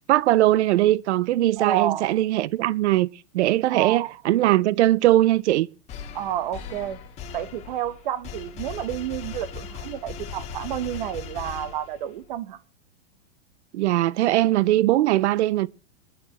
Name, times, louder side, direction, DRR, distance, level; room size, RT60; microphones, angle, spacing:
voice 1, 0.0-3.1 3.3-5.7 13.7-15.7, right 15 dB, 80° right, 0.6 m, -20 dB
voice 2, 1.6-2.1 3.7-4.2 6.1-7.0 7.3-12.6, right 11 dB, 45° right, 1.1 m, -30 dB
sound 1, 5.9-12.2, left 6 dB, 20° left, 1.4 m, -38 dB
22.5 x 11.0 x 3.0 m
supercardioid pair, 175°, 34 cm